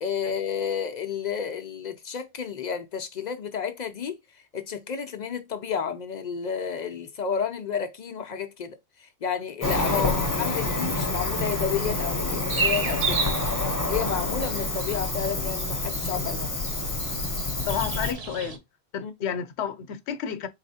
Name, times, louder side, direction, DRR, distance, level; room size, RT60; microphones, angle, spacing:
voice 1, 0.0-13.3 13.9-16.5 19.0-19.3, left 7 dB, 55° left, 0.5 m, -31 dB
Cricket, 9.6-18.1, left 2 dB, 20° left, 0.8 m, -28 dB
voice 2, 9.9-10.2 14.9-15.0 17.7-18.6 18.9-20.5, left 8 dB, 90° left, 0.9 m, -30 dB
sound 1, 12.5-18.6, right 4 dB, 40° right, 0.6 m, -33 dB
4.1 x 3.1 x 2.7 m
omnidirectional pair, 1.1 m